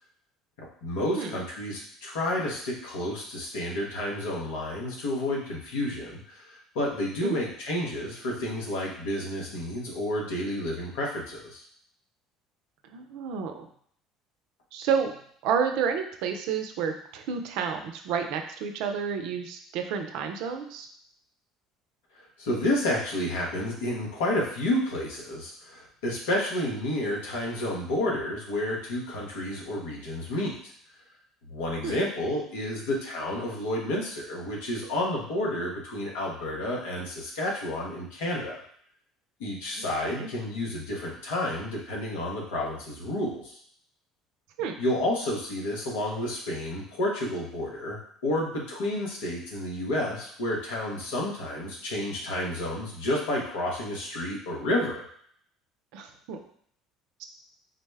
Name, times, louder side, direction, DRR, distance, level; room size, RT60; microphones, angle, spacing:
voice 1, 0.6-11.6 22.2-30.7 31.5-38.6 39.4-43.6 44.8-55.0, left 1 dB, 80° left, -2 dB, 1.0 m, -30 dB
voice 2, 12.9-13.7 14.7-15.1 15.4-20.9 31.8-32.0 39.8-40.3 44.6-44.7 55.9-56.4 57.2-57.3, right 6 dB, 70° right, 5 dB, 0.4 m, -30 dB
3.9 x 2.1 x 3.3 m, 0.62 s
hypercardioid pair, 70°, 0 cm